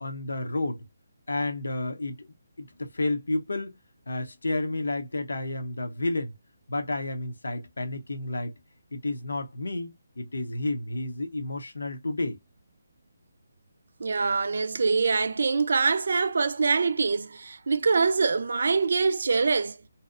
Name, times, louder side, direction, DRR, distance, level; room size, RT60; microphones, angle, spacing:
voice 1, 0.0-0.8 1.3-2.2 2.6-3.7 4.1-6.3 6.7-8.5 8.9-12.4, left 2 dB, 90° left, 0.7 m, -31 dB
voice 2, 14.0-19.8, right 4 dB, 65° right, 0.3 m, -24 dB
2.7 x 2.1 x 2.4 m
hypercardioid pair, 160°, 0 cm